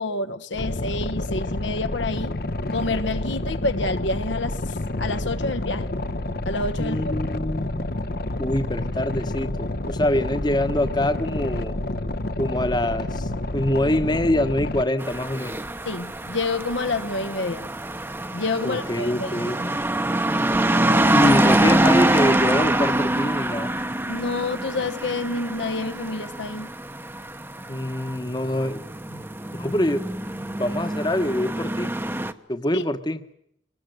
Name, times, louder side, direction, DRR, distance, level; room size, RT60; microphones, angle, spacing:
voice 1, 0.0-2.4 2.7-4.6 5.0-5.9 6.4-7.2 15.8-17.7 18.3-19.7 24.1-26.7 29.1-29.2 32.7-32.8, left 2 dB, 65° left, 1.2 m, -28 dB
Boat Water vehicle, 0.5-14.8, left 2 dB, 50° left, 1.0 m, -29 dB
voice 2, 6.8-7.9 8.4-11.8 12.4-15.6 18.6-19.6 21.1-23.7 27.7-28.8 29.6-30.0 30.6-31.9 32.5-33.2, left 1 dB, 20° left, 1.2 m, -25 dB
sound 1, 15.0-32.3, right 1 dB, 10° right, 1.0 m, -25 dB
25.0 x 20.0 x 7.9 m
head